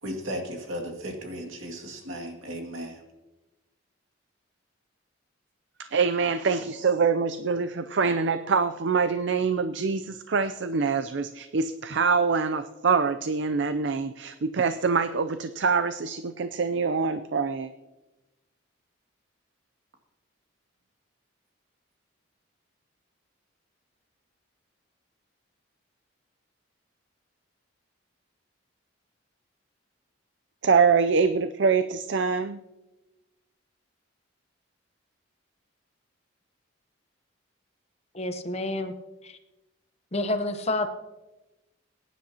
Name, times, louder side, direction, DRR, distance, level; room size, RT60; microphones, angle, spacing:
voice 1, 0.0-3.0, equal, 75° right, 2 dB, 2.2 m, -35 dB
voice 2, 5.8-17.7 30.6-32.6, right 5 dB, 60° right, 11 dB, 0.4 m, -25 dB
voice 3, 38.1-38.9 39.2-39.4 40.1-40.9, left 2 dB, 30° left, 8 dB, 0.8 m, -29 dB
22.0 x 10.0 x 2.9 m, 1.1 s
head